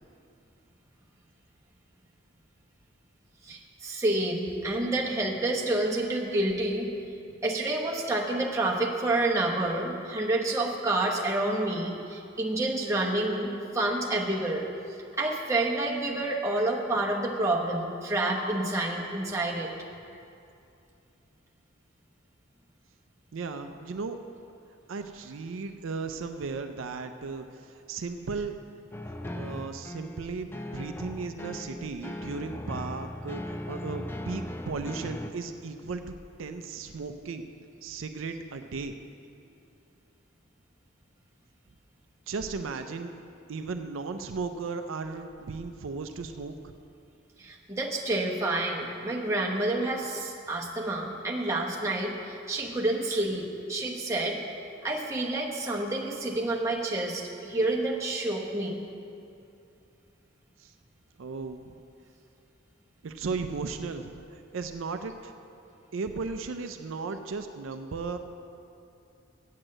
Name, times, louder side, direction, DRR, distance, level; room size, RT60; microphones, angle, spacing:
voice 1, 3.4-6.9 7.4-14.7 15.2-19.7 47.4-54.4 54.8-58.8, right 2 dB, 15° right, -2 dB, 0.9 m, -28 dB
voice 2, 23.3-24.3 24.9-28.5 29.3-37.5 37.8-39.0 42.3-43.2 43.5-46.7 60.6-60.7 61.2-61.8 63.0-65.3 65.9-68.2, right 4 dB, 75° right, 7 dB, 0.5 m, -36 dB
sound 1, 28.9-35.3, left 1 dB, 10° left, 0.3 m, -38 dB
8.0 x 7.5 x 7.7 m, 2.6 s
head